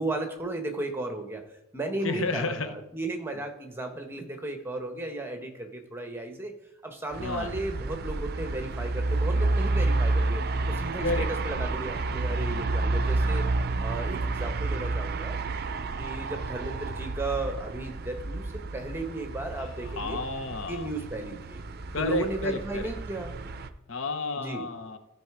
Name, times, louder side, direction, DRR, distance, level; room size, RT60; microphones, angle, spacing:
voice 1, 0.0-1.4 1.7-6.5 6.8-13.5 13.8-15.4 16.0-20.2 20.7-21.6 22.0-23.3 24.4-24.7, right 2 dB, 10° right, 4 dB, 1.0 m, -34 dB
voice 2, 2.0-2.8 7.2-7.5 11.0-11.3 19.5-20.9 21.9-22.9 23.9-25.0, left 3 dB, 75° left, 8 dB, 0.9 m, -31 dB
sound 1, 7.1-23.7, right 2 dB, 50° right, 0.5 m, -30 dB
13.0 x 4.7 x 4.8 m, 0.86 s
head